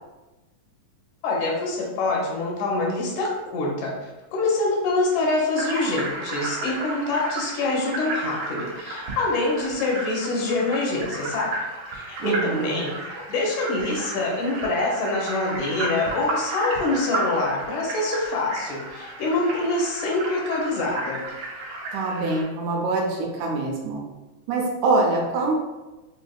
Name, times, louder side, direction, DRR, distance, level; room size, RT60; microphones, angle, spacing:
voice 1, 1.2-11.6 11.9-12.9 13.3-21.2, left 2 dB, 90° left, -2 dB, 2.3 m, -25 dB
sound 1, 5.5-22.4, right 2 dB, 65° right, 1.8 m, -33 dB
voice 2, 12.2-12.9 21.9-24.0 24.5-25.5, right 3 dB, 80° right, 0 dB, 2.1 m, -24 dB
5.8 x 2.6 x 2.3 m, 1.1 s
omnidirectional pair, 3.4 m